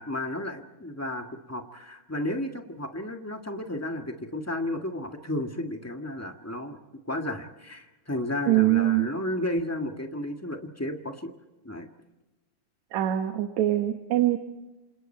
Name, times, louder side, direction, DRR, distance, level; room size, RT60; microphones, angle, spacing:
voice 1, 0.0-6.8 7.0-11.3 11.6-11.9, left 1 dB, 10° left, 4 dB, 0.9 m, -33 dB
voice 2, 8.5-9.1 12.9-14.4, right 14 dB, 75° right, 6 dB, 2.6 m, -23 dB
28.0 x 27.5 x 4.5 m, 1.1 s
omnidirectional pair, 3.4 m